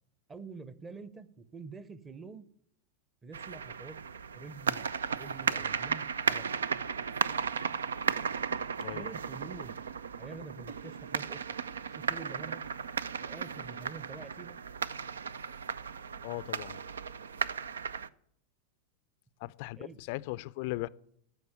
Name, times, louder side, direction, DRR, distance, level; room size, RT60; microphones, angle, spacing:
voice 1, 0.3-2.4 3.2-4.0 4.3-4.9 5.1-6.7 8.9-9.9 10.2-11.4 11.9-12.6 13.2-14.6 19.8-20.0, right 4 dB, 15° right, 0.9 m, -47 dB
sound 1, 3.3-18.1, right 6 dB, 70° right, 0.4 m, -35 dB
voice 2, 16.2-16.8 19.4-20.9, left 20 dB, 50° left, 0.4 m, -38 dB
14.5 x 5.7 x 8.9 m
figure-of-eight pair, 90°, 0 cm